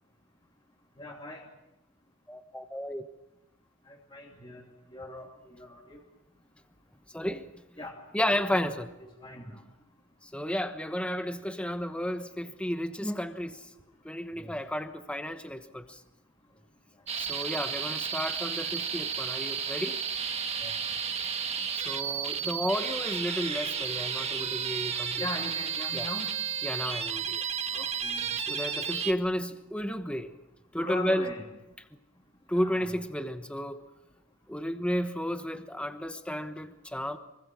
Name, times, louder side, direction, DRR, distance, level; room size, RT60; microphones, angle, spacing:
voice 1, 1.0-1.4 4.1-4.6 4.9-5.3 5.6-6.0 7.8-7.9 9.0-9.6 14.4-14.5 20.6-20.7 25.2-26.3 27.7-28.3 30.8-31.4 32.5-32.9, left 2 dB, 20° left, 0 dB, 2.7 m, -39 dB
voice 2, 2.3-3.0 7.1-7.4 8.1-8.9 10.2-13.6 14.0-16.0 17.2-20.0 21.7-25.2 25.9-26.1 26.6-27.4 28.5-30.3 30.7-31.3 32.5-33.9 34.5-37.2, equal, 5° left, 8 dB, 1.1 m, -32 dB
sound 1, 17.1-29.1, right 7 dB, 30° right, 1.6 m, -32 dB
25.0 x 24.5 x 6.2 m, 0.94 s
head